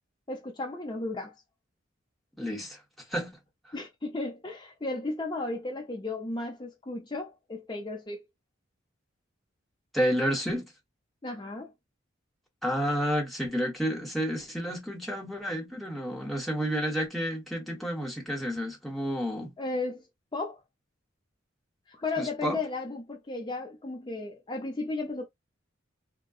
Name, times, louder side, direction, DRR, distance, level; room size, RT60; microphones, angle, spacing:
voice 1, 0.3-1.3 3.7-8.2 11.2-11.7 19.6-20.1 20.3-20.6 21.9-25.3, left 2 dB, 25° left, 0.6 m, -34 dB
voice 2, 2.4-2.8 3.1-3.3 9.9-10.7 12.6-19.5 22.2-22.6, equal, ahead, 1.0 m, -30 dB
3.6 x 2.1 x 2.3 m
head